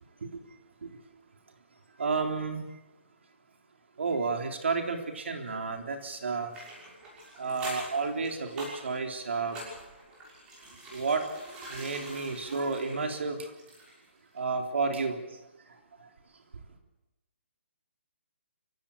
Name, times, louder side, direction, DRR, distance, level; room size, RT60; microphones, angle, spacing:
voice 1, 2.0-2.6 4.0-6.5 7.4-9.6 10.9-11.2 11.7-13.4 14.4-15.2, right 4 dB, 70° right, 4 dB, 3.8 m, -31 dB
sound 1, 6.5-14.1 14.4-14.5, right 1 dB, 10° right, 6.2 m, -45 dB
25.5 x 16.5 x 8.7 m, 1.0 s
hypercardioid pair, 170°, 7 cm